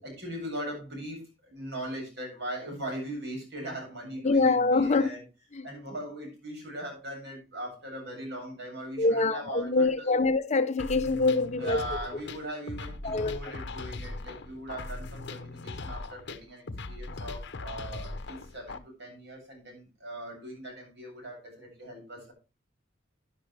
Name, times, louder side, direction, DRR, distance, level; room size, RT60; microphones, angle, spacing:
voice 1, 0.0-5.2 5.6-10.2 11.6-22.3, right 1 dB, 60° right, 7.9 m, -40 dB
voice 2, 4.2-5.1 5.5-5.7 9.0-11.8 13.0-13.5, left 3 dB, 35° left, 0.8 m, -25 dB
sound 1, 10.8-18.8, left 2 dB, 65° left, 0.9 m, -39 dB
12.0 x 10.5 x 3.4 m
head